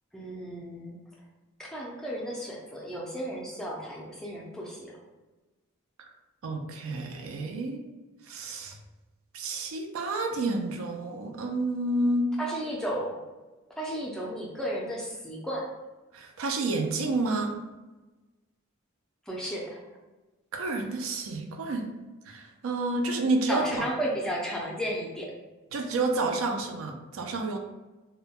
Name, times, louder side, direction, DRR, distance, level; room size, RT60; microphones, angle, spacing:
voice 1, 0.1-1.0 1.6-5.0 12.4-13.2 13.8-15.7 19.3-19.8 23.5-25.3, equal, 5° left, -3 dB, 0.4 m, -33 dB
voice 2, 6.4-7.8 8.3-8.8 9.3-12.3 16.1-17.6 20.5-21.9 22.3-23.8 25.7-27.6, right 2 dB, 80° right, 3 dB, 0.4 m, -29 dB
2.1 x 2.0 x 3.5 m, 1.1 s
head